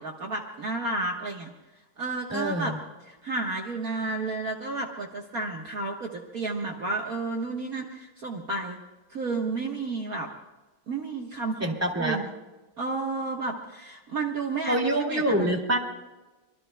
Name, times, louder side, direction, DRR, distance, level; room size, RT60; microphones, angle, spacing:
voice 1, 0.0-1.5 2.0-2.7 3.0-8.8 9.1-10.3 10.9-12.3 12.8-15.6, right 3 dB, 50° right, 0 dB, 1.7 m, -32 dB
voice 2, 2.3-2.8 11.6-12.2 14.7-15.8, right 1 dB, 10° right, 1 dB, 2.3 m, -26 dB
25.5 x 22.0 x 2.2 m, 1.1 s
omnidirectional pair, 2.1 m